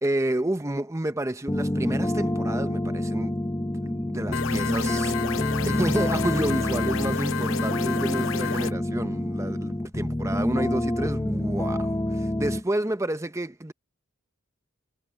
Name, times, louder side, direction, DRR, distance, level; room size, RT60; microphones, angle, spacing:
voice 1, 0.0-13.7, right 1 dB, 15° right, 0.8 m, -30 dB
sound 1, 1.5-12.6, left 1 dB, 15° left, 0.8 m, -27 dB
sound 2, 4.3-8.7, left 6 dB, 70° left, 0.7 m, -31 dB
head